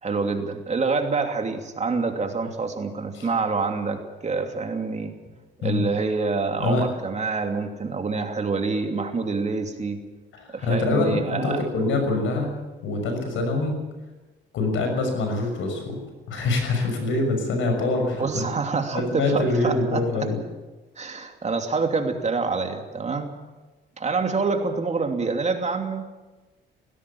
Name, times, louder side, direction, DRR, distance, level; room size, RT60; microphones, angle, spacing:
voice 1, 0.0-5.1 5.6-10.0 10.5-11.6 18.2-20.3 21.0-23.3 24.0-26.1, right 4 dB, 35° right, 5 dB, 2.8 m, -26 dB
voice 2, 10.3-12.5 12.8-13.8 14.5-16.0 16.3-18.4 18.9-20.4, left 2 dB, 80° left, 4 dB, 6.4 m, -24 dB
18.5 x 16.5 x 8.6 m, 1.2 s
cardioid pair, 90°, 20 cm